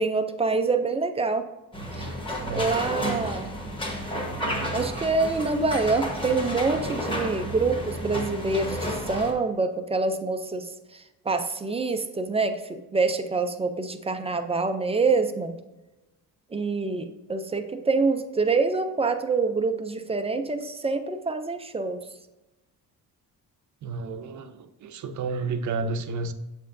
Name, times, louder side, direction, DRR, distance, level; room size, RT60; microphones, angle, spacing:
voice 1, 0.0-1.5 2.0-2.1 2.5-3.5 4.7-15.6 16.5-22.0, right 4 dB, 15° right, 7 dB, 0.3 m, -26 dB
sound 1, 1.7-9.3, equal, 15° left, 1.1 m, -31 dB
voice 2, 2.4-2.8 23.8-26.3, right 4 dB, 50° right, 8 dB, 0.6 m, -31 dB
7.4 x 5.7 x 2.5 m, 1.0 s
cardioid pair, 160°, 37 cm